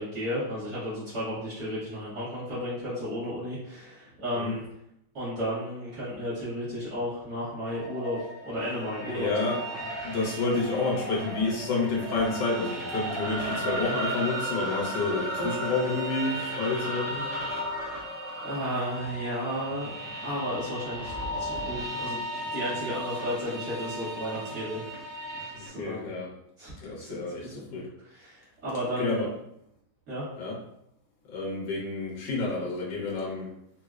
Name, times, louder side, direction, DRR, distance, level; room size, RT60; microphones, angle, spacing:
voice 1, 0.0-4.6 5.1-8.2 8.5-9.6 18.4-20.0 20.2-21.1 21.4-22.2 22.5-24.8 25.6-26.1 26.6-26.7 27.0-29.3 30.1-30.3, equal, 65° right, -12 dB, 1.8 m, -33 dB
sound 1, 7.5-19.9, right 1 dB, 45° left, 0.5 m, -37 dB
sound 2, 7.6-25.7, equal, 25° right, 0.9 m, -37 dB
voice 2, 9.1-9.6 10.0-17.2 25.5-26.3 26.8-27.9 29.0-29.3 30.4-30.6 31.3-33.5, left 3 dB, 80° left, -4 dB, 1.6 m, -29 dB
sound 3, 15.4-19.5, right 2 dB, 65° left, 1.2 m, -44 dB
4.6 x 2.0 x 2.4 m, 0.75 s
omnidirectional pair, 1.9 m